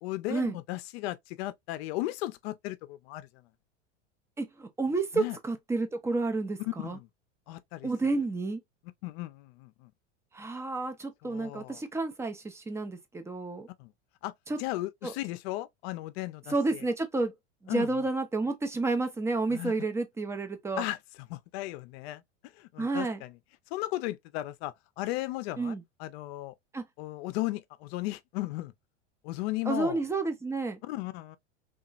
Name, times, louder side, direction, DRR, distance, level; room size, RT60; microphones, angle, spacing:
voice 1, 0.0-3.3 5.1-5.4 6.8-7.1 7.5-7.9 9.0-9.9 11.2-11.8 13.8-13.9 14.2-14.3 14.6-16.8 17.7-17.9 19.5-19.7 20.8-21.0 21.3-22.2 22.6-23.4 23.7-26.5 27.0-28.7 29.2-30.0 30.8-31.4, left 17 dB, 60° left, 0.5 m, -36 dB
voice 2, 4.4-7.0 7.8-8.6 10.3-13.7 14.5-14.6 15.0-15.1 16.5-17.3 17.6-20.9 22.8-23.2 25.6-25.8 26.7-26.8 29.7-30.8, right 3 dB, 10° right, 0.3 m, -30 dB
2.8 x 2.4 x 2.3 m
hypercardioid pair, 105°, 35 cm